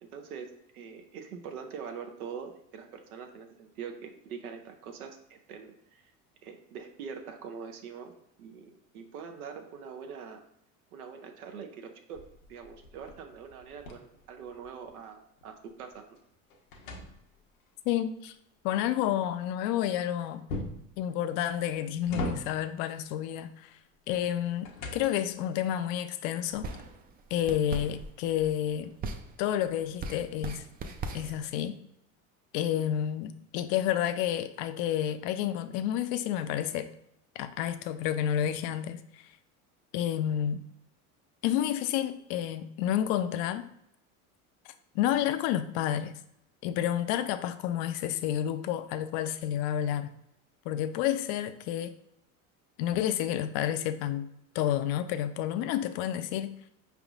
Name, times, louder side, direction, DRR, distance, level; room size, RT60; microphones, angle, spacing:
voice 1, 0.0-6.1 6.4-8.1 8.4-10.4 10.9-12.2 12.5-16.0, right 6 dB, 90° right, 0.7 m, -43 dB
sound 1, 12.1-15.0 15.4-17.7 20.5-21.0 21.6-22.8 24.1-25.4, left 1 dB, 85° left, 0.9 m, -40 dB
voice 2, 17.9-18.3 18.6-20.4 21.0-23.7 24.1-26.7 27.3-28.9 29.4-30.6 31.1-31.8 32.5-36.9 37.4-39.2 39.9-40.6 41.4-43.7 44.9-46.2 46.6-50.1 50.7-52.0 52.8-54.3 54.5-56.5, left 11 dB, 60° left, 0.5 m, -30 dB
sound 2, 26.5-31.5, right 3 dB, 25° right, 0.3 m, -40 dB
5.0 x 3.5 x 2.4 m
hypercardioid pair, 85°, 43 cm